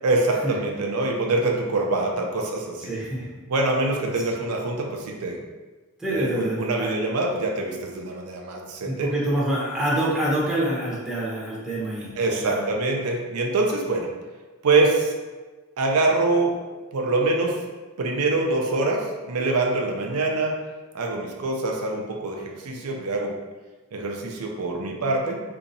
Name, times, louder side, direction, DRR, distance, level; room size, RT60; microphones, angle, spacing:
voice 1, 0.0-2.9 3.5-5.4 6.1-9.1 12.2-14.1 14.6-15.1 15.8-16.6 16.9-17.6 18.0-20.6 20.9-23.3 23.9-25.4, right 2 dB, 85° right, 1 dB, 0.5 m, -24 dB
voice 2, 2.9-3.2 4.1-4.2 6.0-6.9 8.8-12.1 12.4-12.6, right 1 dB, 5° right, -7 dB, 0.9 m, -26 dB
4.2 x 2.8 x 2.6 m, 1.3 s
head